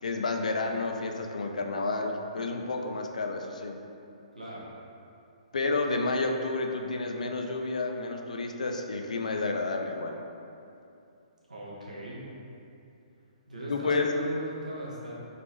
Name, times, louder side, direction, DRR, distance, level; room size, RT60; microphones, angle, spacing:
voice 1, 0.0-3.8 5.5-10.2 13.7-14.1, left 3 dB, 75° left, 3 dB, 0.4 m, -30 dB
voice 2, 4.3-4.7 11.5-12.2 13.5-15.1, equal, 90° right, -6 dB, 0.9 m, -38 dB
3.9 x 2.5 x 3.0 m, 2.6 s
figure-of-eight pair, 130°, 4 cm